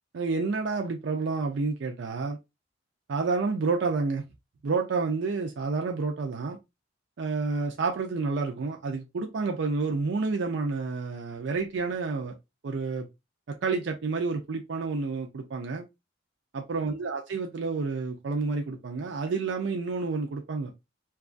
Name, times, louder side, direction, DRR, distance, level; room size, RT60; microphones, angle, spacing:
voice 1, 0.1-2.4 3.1-4.2 4.6-6.6 7.2-12.3 12.6-13.1 13.6-15.8 16.5-20.7, right 4 dB, 70° right, 0.4 m, -29 dB
2.9 x 2.3 x 2.4 m
head